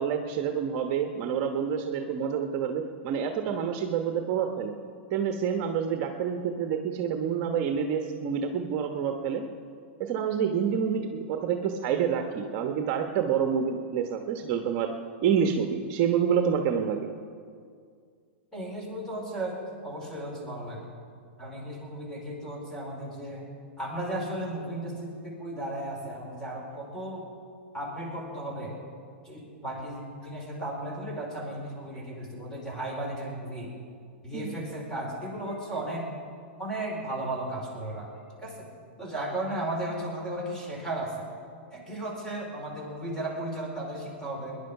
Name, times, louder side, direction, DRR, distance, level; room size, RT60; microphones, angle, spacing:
voice 1, 0.0-4.7 5.1-9.4 10.0-14.9 15.2-17.1 34.3-34.6, right 7 dB, 40° right, 5 dB, 1.1 m, -28 dB
voice 2, 18.5-19.6 19.8-20.9 21.4-23.5 23.8-27.3 27.7-28.7 29.2-33.7 34.2-36.1 36.6-38.1 38.4-38.7 39.0-41.2 41.7-44.5, right 1 dB, 10° left, -2 dB, 4.6 m, -35 dB
20.0 x 10.5 x 5.9 m, 2.2 s
hypercardioid pair, 135°, 6 cm